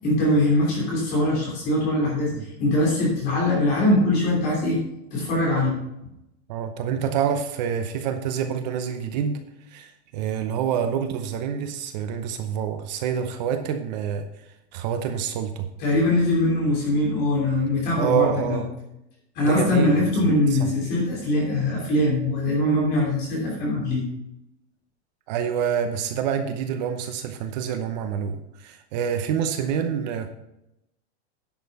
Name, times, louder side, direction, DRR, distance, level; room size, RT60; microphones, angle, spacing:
voice 1, 0.0-4.8 5.1-5.8 15.8-18.6 19.3-24.0, left 1 dB, 30° left, -3 dB, 3.1 m, -22 dB
voice 2, 6.5-9.4 9.7-14.3 14.7-15.7 17.9-18.7 19.4-20.7 25.3-30.3, right 8 dB, 40° right, 7 dB, 0.8 m, -27 dB
10.5 x 6.6 x 5.3 m, 0.85 s
supercardioid pair, 175°, 34 cm